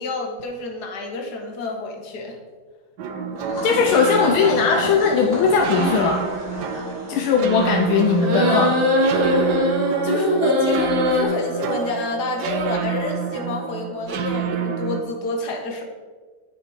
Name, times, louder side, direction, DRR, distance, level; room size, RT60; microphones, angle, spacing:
voice 1, 0.0-2.4 8.3-8.8 10.0-15.8, left 3 dB, 55° left, 2 dB, 1.9 m, -28 dB
sound 1, 3.0-15.0, right 6 dB, 65° right, 1.3 m, -28 dB
sound 2, 3.3-9.1, left 1 dB, 40° left, 3.1 m, -32 dB
voice 2, 3.6-6.3 7.1-8.7, left 5 dB, 85° left, 2 dB, 1.6 m, -19 dB
sound 3, 8.2-11.2, equal, 85° right, 2.4 m, -20 dB
9.7 x 7.5 x 4.9 m, 1.4 s
omnidirectional pair, 2.2 m